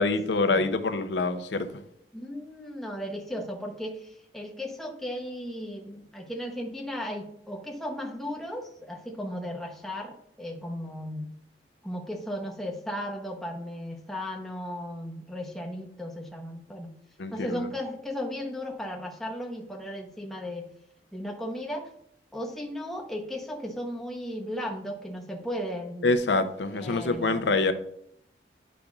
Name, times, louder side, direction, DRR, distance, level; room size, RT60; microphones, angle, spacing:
voice 1, 0.0-1.7 17.2-17.7 26.0-27.7, left 3 dB, 80° left, 0.6 m, -25 dB
voice 2, 2.1-11.3 11.8-16.9 17.3-20.7 21.1-21.9 22.3-26.1 26.7-27.6, equal, ahead, 0.8 m, -36 dB
10.0 x 5.0 x 2.4 m
head